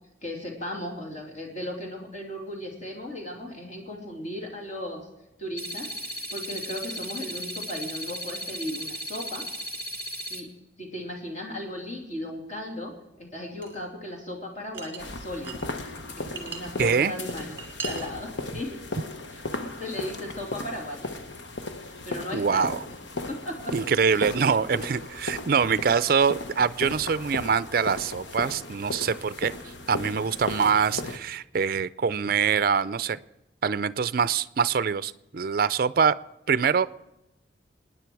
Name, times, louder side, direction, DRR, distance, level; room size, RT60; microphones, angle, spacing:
voice 1, 0.2-5.1 5.4-9.5 10.3-10.5 10.8-12.9 13.2-17.6 17.8-18.8 19.3-21.1 21.8-22.8 23.3-23.7 24.1-24.5, left 1 dB, 40° left, 0 dB, 3.1 m, -36 dB
sound 1, 5.6-10.4, equal, 15° left, 1.6 m, -36 dB
sound 2, 13.6-13.8 14.7-15.6 16.0-16.6 17.1-18.1, right 5 dB, 15° right, 2.1 m, -38 dB
sound 3, 15.0-31.2, left 2 dB, 75° left, 1.1 m, -36 dB
voice 2, 16.8-17.1 22.3-22.8 23.7-29.5 29.9-33.2 33.6-36.2 36.5-36.9, right 6 dB, 50° right, 16 dB, 0.4 m, -24 dB
26.5 x 9.8 x 4.7 m, 0.94 s
head